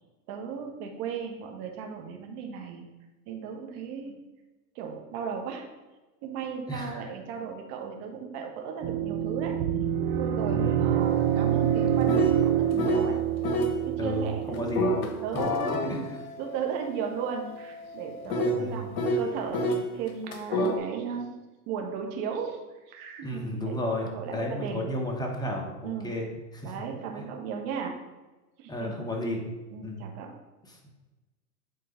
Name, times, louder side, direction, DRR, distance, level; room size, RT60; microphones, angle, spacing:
voice 1, 0.3-2.8 3.3-4.2 4.7-5.7 6.2-9.6 10.2-13.2 13.8-14.7 15.2-16.1 16.4-21.3 21.7-24.9 25.8-26.1 26.6-27.9 28.6-29.0 29.7-30.3, right 6 dB, 40° right, 2 dB, 1.4 m, -36 dB
sound 1, 8.8-15.2, right 10 dB, 25° right, 0.5 m, -26 dB
voice 2, 10.5-10.8 14.0-14.9 15.9-16.2 18.4-18.9 23.2-26.3 26.5-26.7 28.7-29.5 29.8-30.0, left 1 dB, 10° left, 0 dB, 1.1 m, -32 dB
sound 2, 11.0-13.1 13.4-13.8 14.7-19.8 20.3-20.8, equal, 65° left, 1.2 m, -30 dB
8.1 x 3.8 x 5.1 m, 1.1 s
hypercardioid pair, 120°, 47 cm